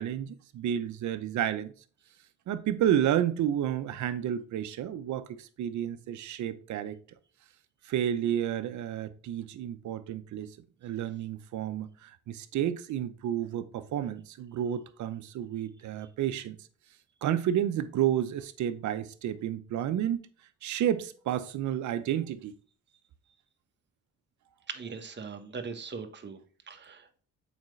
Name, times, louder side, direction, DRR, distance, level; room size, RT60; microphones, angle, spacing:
voice 1, 0.0-1.7 2.5-7.0 7.8-10.6 10.8-16.6 17.2-20.2 20.6-22.5, right 10 dB, 70° right, 0.8 m, -31 dB
voice 2, 24.7-26.4 26.7-27.3, right 5 dB, 35° right, 1.2 m, -40 dB
7.2 x 5.1 x 3.2 m
cardioid pair, 90°, 30 cm